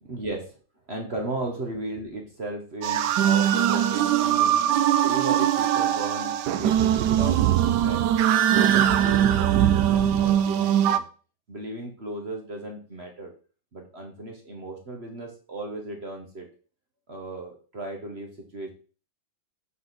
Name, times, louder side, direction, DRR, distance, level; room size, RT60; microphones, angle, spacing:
voice 1, 0.0-0.5 0.9-4.6 5.0-8.1 8.5-11.0 11.5-13.3 13.7-16.5 17.1-18.7, right 2 dB, 40° right, 1 dB, 1.2 m, -36 dB
sound 1, 2.8-11.0, right 10 dB, 70° right, 1.1 m, -21 dB
7.5 x 4.1 x 4.0 m, 0.37 s
omnidirectional pair, 2.0 m